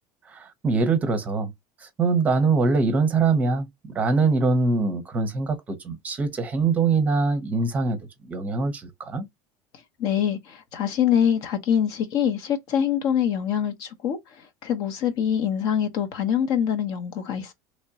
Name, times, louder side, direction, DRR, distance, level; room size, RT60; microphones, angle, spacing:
voice 1, 0.3-1.5 1.8-8.0 8.2-9.2, right 4 dB, 20° right, 0.7 m, -23 dB
voice 2, 10.0-17.5, left 9 dB, 45° left, 0.8 m, -24 dB
3.5 x 3.1 x 2.8 m
cardioid pair, 170°, 9 cm